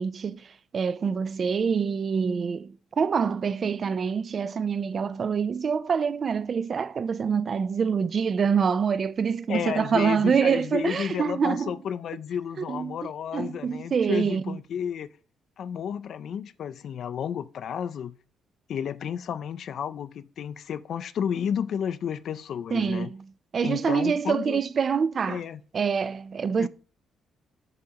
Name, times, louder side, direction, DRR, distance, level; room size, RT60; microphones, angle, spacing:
voice 1, 0.0-11.8 12.7-14.6 22.7-23.3 23.5-25.4 25.7-26.7, right 6 dB, 45° right, 0.4 m, -26 dB
voice 2, 9.5-15.1 15.6-18.2 18.7-23.1 23.6-24.6 25.3-25.6 26.6-26.7, left 8 dB, 65° left, 0.3 m, -32 dB
8.0 x 6.3 x 2.9 m
cardioid pair, 90°, 0 cm